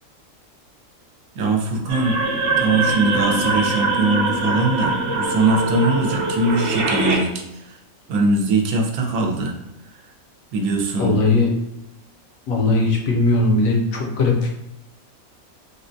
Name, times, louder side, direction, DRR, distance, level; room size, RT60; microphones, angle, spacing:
voice 1, 1.3-2.2 2.6-7.4 8.1-9.5 10.5-11.2, right 2 dB, 85° right, 1 dB, 1.1 m, -21 dB
sound 1, 1.9-7.2, right 2 dB, 65° right, 0.8 m, -22 dB
voice 2, 11.0-11.5 12.5-14.5, left 3 dB, 70° left, -1 dB, 1.0 m, -19 dB
3.6 x 2.1 x 2.5 m, 0.88 s
omnidirectional pair, 1.5 m